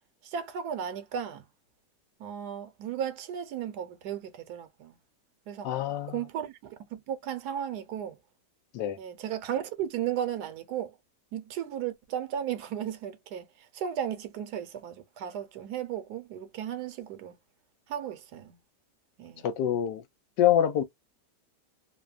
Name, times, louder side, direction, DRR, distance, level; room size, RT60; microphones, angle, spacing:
voice 1, 0.2-1.4 2.2-5.0 5.5-5.7 6.1-8.2 9.0-10.9 11.3-13.4 13.7-17.4 17.9-18.6 19.2-19.5, right 9 dB, 75° right, 1.1 m, -35 dB
voice 2, 5.6-6.2 8.7-9.0 19.4-20.0 20.4-20.8, left 10 dB, 80° left, 1.3 m, -25 dB
3.3 x 2.1 x 2.3 m
omnidirectional pair, 1.8 m